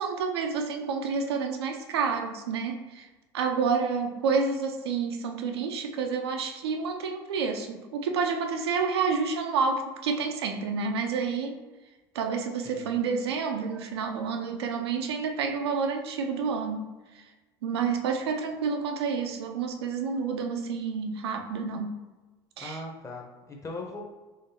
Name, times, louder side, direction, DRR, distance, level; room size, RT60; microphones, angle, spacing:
voice 1, 0.0-3.1 3.3-11.6 12.1-17.3 17.6-22.0 22.6-22.8, right 5 dB, 85° right, 4 dB, 0.4 m, -29 dB
voice 2, 12.6-13.0 22.6-24.0, left 2 dB, 25° left, 1 dB, 0.9 m, -39 dB
3.8 x 3.2 x 2.8 m, 1.2 s
hypercardioid pair, 70°, 13 cm